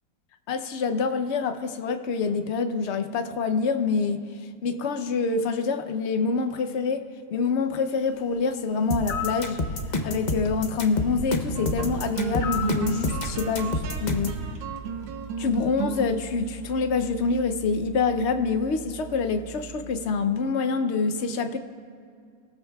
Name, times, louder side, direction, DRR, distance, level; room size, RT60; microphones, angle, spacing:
voice 1, 0.5-4.2 4.6-9.6 10.0-14.3 15.4-21.6, left 4 dB, 85° left, 8 dB, 0.6 m, -26 dB
sound 1, 8.9-14.4, left 2 dB, 40° left, 0.6 m, -28 dB
sound 2, 9.1-9.5 12.4-12.8, left 9 dB, 65° left, 0.9 m, -31 dB
sound 3, 10.6-20.2, right 6 dB, 85° right, 1.6 m, -36 dB
25.0 x 15.5 x 2.3 m, 2.2 s
omnidirectional pair, 2.0 m